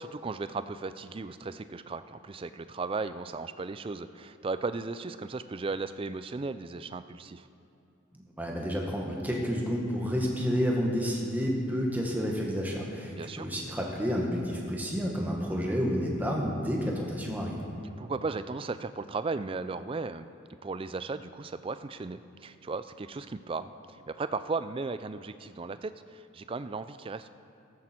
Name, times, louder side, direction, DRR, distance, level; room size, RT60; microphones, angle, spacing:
voice 1, 0.0-7.5 13.1-13.5 18.0-20.3 20.6-27.3, right 3 dB, 25° right, 12 dB, 0.3 m, -36 dB
voice 2, 8.4-17.6, equal, 10° right, -1 dB, 1.5 m, -30 dB
13.5 x 13.5 x 4.4 m, 2.6 s
head